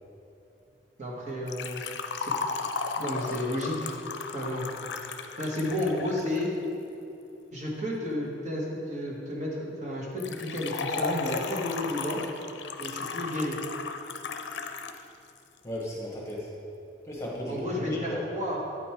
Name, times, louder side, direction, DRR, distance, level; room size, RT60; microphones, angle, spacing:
voice 1, 1.0-1.8 2.2-2.3 3.0-3.9 4.3-4.7 5.4-6.5 7.5-12.2 12.8-13.6 17.5-18.6, left 1 dB, 45° right, -4 dB, 1.4 m, -32 dB
Liquid, 1.5-6.5 10.2-15.0 15.3-15.4 16.3-16.4, left 5 dB, 85° left, 0.5 m, -35 dB
voice 2, 15.6-16.5 17.1-18.2, left 1 dB, 15° left, -4 dB, 1.3 m, -35 dB
8.9 x 5.3 x 4.4 m, 2.9 s
head